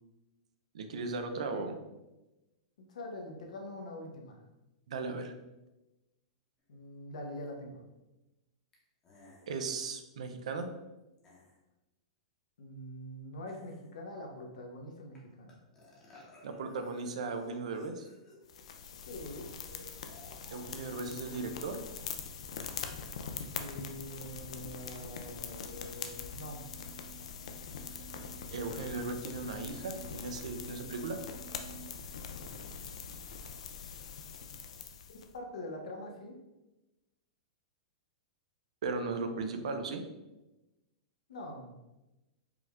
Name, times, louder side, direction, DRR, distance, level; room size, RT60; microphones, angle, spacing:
voice 1, 0.7-1.7 4.9-5.3 9.5-10.7 16.4-18.1 20.5-21.8 28.5-31.3 38.8-40.0, right 4 dB, 70° right, 7 dB, 0.5 m, -37 dB
voice 2, 2.8-4.4 6.7-7.8 12.6-15.6 19.1-19.5 23.5-26.6 35.1-36.4 41.3-41.7, left 1 dB, 80° left, 2 dB, 0.9 m, -44 dB
sound 1, 7.4-7.5 8.7-8.8 9.0-9.5 11.2-11.6 13.5-14.0 15.2-15.3 15.5-18.6 19.1-22.9, left 2 dB, 15° left, 0.8 m, -58 dB
sound 2, 18.5-35.3, left 6 dB, 65° left, 0.4 m, -43 dB
sound 3, 23.8-31.9, right 5 dB, 55° right, 1.0 m, -56 dB
4.9 x 2.4 x 3.5 m, 1.0 s
supercardioid pair, 175°, 4 cm